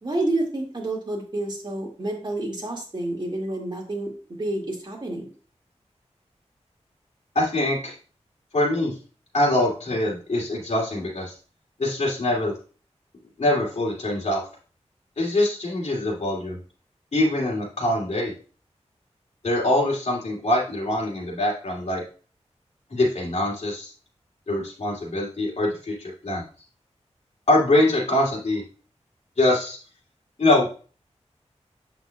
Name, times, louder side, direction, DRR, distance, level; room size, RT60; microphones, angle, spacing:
voice 1, 0.0-4.1 4.4-5.3, right 2 dB, 40° right, -1 dB, 2.1 m, -29 dB
voice 2, 7.3-7.9 8.5-8.9 9.3-11.3 11.8-12.5 13.4-14.4 15.2-16.6 17.1-18.3 19.4-22.0 22.9-23.9 24.5-26.4 27.5-28.6 29.4-29.8 30.4-30.7, left 1 dB, 70° left, -3 dB, 2.5 m, -23 dB
7.8 x 5.9 x 2.3 m, 0.38 s
wide cardioid pair, 85°, 12 cm